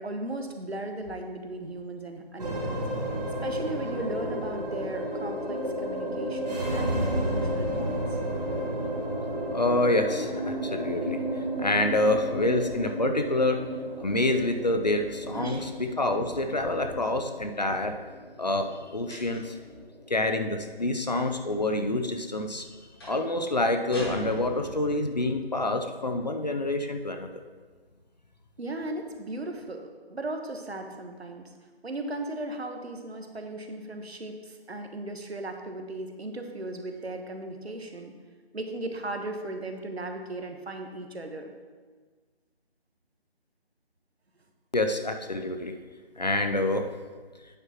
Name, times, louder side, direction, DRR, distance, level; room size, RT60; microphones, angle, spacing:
voice 1, 0.0-2.8 3.4-8.2 15.3-15.7 28.6-31.5 31.8-38.1 38.5-41.5, right 2 dB, 80° right, 5 dB, 1.2 m, -37 dB
sound 1, 2.4-20.9, right 1 dB, 40° right, 1.6 m, -32 dB
voice 2, 9.5-11.2 11.6-13.6 14.0-18.0 18.4-19.6 20.1-22.7 23.0-27.4 44.7-45.7 46.2-46.9, left 2 dB, 45° left, 6 dB, 0.5 m, -27 dB
sound 2, 19.1-19.7 23.0-23.3 23.9-25.0, equal, 25° left, 1.7 m, -39 dB
9.1 x 7.4 x 2.9 m, 1.5 s
figure-of-eight pair, 165°, 31 cm